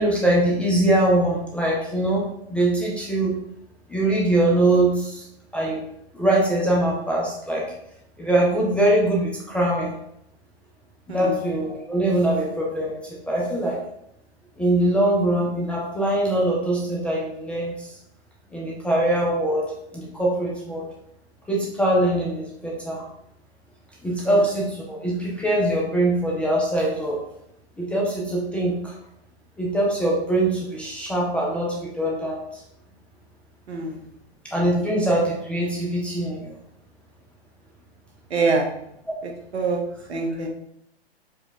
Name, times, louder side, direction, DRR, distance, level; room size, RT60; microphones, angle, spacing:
voice 1, 0.0-3.4 3.9-5.2 5.5-5.8 6.1-7.7 8.2-9.9 11.1-13.8 14.6-17.9 18.5-19.6 19.9-20.9 21.5-23.1 24.0-27.2 27.8-28.9 29.6-32.4 34.4-36.5, right 1 dB, 5° left, -4 dB, 0.3 m, -22 dB
voice 2, 11.1-11.4 24.2-24.3 33.7-34.0 38.3-38.7 39.5-39.8 40.1-40.5, right 3 dB, 85° right, 1 dB, 1.1 m, -24 dB
4.7 x 2.2 x 3.8 m, 0.76 s
hypercardioid pair, 125°, 32 cm